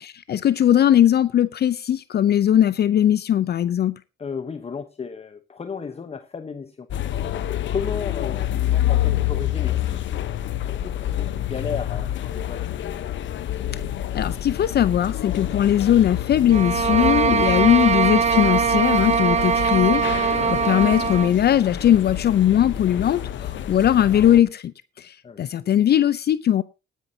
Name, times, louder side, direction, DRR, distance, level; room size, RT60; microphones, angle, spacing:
voice 1, 0.0-4.0 14.1-26.6, left 10 dB, 55° left, 0.6 m, -19 dB
voice 2, 4.2-6.9 7.7-10.2 10.6-12.6 16.8-17.1 20.3-20.6 23.4-23.5 25.2-25.4, left 5 dB, 30° left, 1.0 m, -34 dB
sound 1, 6.9-24.4, left 12 dB, 70° left, 1.0 m, -28 dB
sound 2, 16.5-21.4, right 6 dB, 35° right, 0.6 m, -21 dB
18.0 x 10.0 x 2.8 m
cardioid pair, 90°, 20 cm